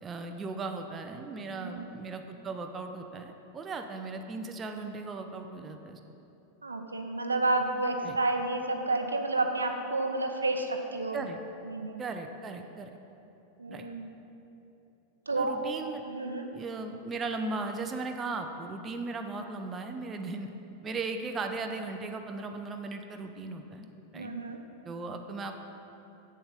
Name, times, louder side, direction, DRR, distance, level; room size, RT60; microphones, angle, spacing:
voice 1, 0.0-6.0 8.0-8.2 11.1-11.4 12.0-12.9 13.7-13.9 15.4-16.0 16.5-20.5 20.8-23.9 24.1-24.3 24.8-25.6, right 3 dB, 20° right, 5 dB, 0.5 m, -37 dB
voice 2, 1.5-1.9 6.6-11.3 11.7-12.1 13.6-14.1 15.3-15.6 16.1-16.5 24.1-24.6, right 2 dB, 80° right, 4 dB, 0.6 m, -30 dB
7.7 x 7.0 x 5.1 m, 2.9 s
figure-of-eight pair, 90°, 0 cm